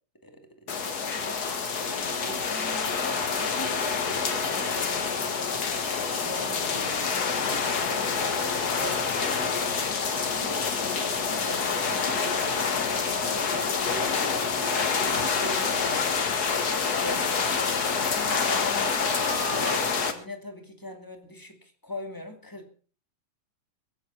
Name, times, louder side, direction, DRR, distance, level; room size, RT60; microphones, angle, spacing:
voice 1, 0.2-0.8 1.2-1.6 2.2-5.7 6.2-9.8 10.3-14.5 14.8-17.6 18.0-19.1 19.5-22.7, left 1 dB, 10° left, 5 dB, 1.6 m, -41 dB
sound 1, 0.7-20.1, left 5 dB, 45° left, 1.4 m, -27 dB
sound 2, 2.1-16.1, left 2 dB, 90° left, 5.1 m, -44 dB
sound 3, 15.0-15.6 15.9-16.1 16.4-16.7 17.0-17.7 18.1-18.7 19.0-19.8, right 11 dB, 85° right, 2.6 m, -42 dB
23.5 x 7.9 x 5.6 m, 0.40 s
omnidirectional pair, 3.6 m